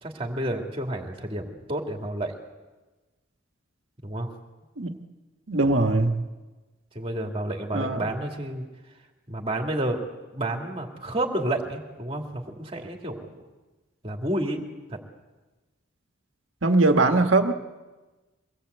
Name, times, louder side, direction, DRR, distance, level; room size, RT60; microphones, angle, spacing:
voice 1, 0.0-2.4 4.0-4.3 6.9-8.7 9.3-10.0 10.3-13.5 14.0-15.0, right 1 dB, 25° right, 2 dB, 2.6 m, -30 dB
voice 2, 5.5-6.2 7.7-8.1 16.6-17.5, right 2 dB, 70° right, 5 dB, 1.6 m, -21 dB
24.0 x 18.5 x 8.2 m, 1.2 s
head